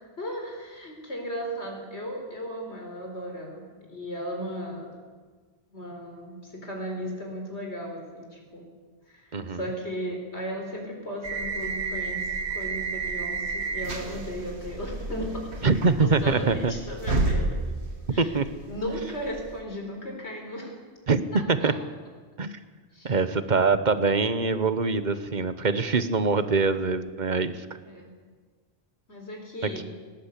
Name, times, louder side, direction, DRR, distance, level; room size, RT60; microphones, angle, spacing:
voice 1, 0.2-5.0 5.7-8.7 9.1-15.7 16.0-17.6 18.1-18.4 18.7-20.7 21.3-21.7 22.9-23.1 27.9-28.1 29.1-29.8, equal, 90° left, 1 dB, 4.6 m, -36 dB
sound 1, 11.2-19.6, right 3 dB, 80° right, 2.1 m, -31 dB
voice 2, 15.6-16.7 18.1-18.5 21.1-21.7 22.4-22.6 23.0-27.7 29.8-29.9, right 4 dB, 45° right, 12 dB, 1.2 m, -24 dB
19.0 x 18.5 x 8.3 m, 1.5 s
omnidirectional pair, 1.1 m